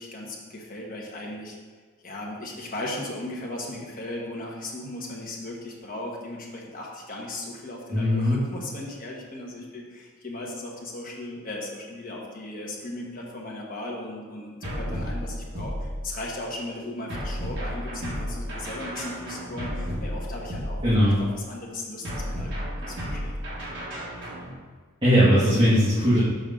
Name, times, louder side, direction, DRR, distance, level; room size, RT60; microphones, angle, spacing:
voice 1, 0.0-1.6 2.0-23.3, left 1 dB, 40° left, -2 dB, 1.2 m, -37 dB
voice 2, 7.9-8.4 20.8-21.1 25.0-26.2, equal, 20° right, -13 dB, 1.9 m, -19 dB
sound 1, 14.6-16.4 17.1-21.3 22.0-24.5, equal, 55° right, 1.6 m, -33 dB
6.6 x 5.3 x 3.7 m, 1.5 s
head